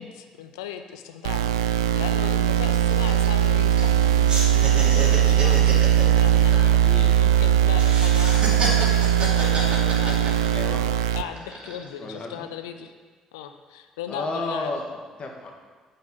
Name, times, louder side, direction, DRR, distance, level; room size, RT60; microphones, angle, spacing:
voice 1, 0.0-10.4 11.1-12.9 13.3-14.7, left 8 dB, 80° left, 8 dB, 0.6 m, -37 dB
sound 1, 1.2-11.2, right 10 dB, 80° right, 0.3 m, -20 dB
sound 2, 2.6-4.0 4.3-7.4 7.7-10.9 11.3-11.9, right 2 dB, 40° right, 2.8 m, -31 dB
voice 2, 6.8-7.1 10.5-10.8 12.0-12.5 14.1-15.5, left 2 dB, 45° left, 1 dB, 1.8 m, -32 dB
8.9 x 5.7 x 7.0 m, 1.5 s
hypercardioid pair, 50°, 3 cm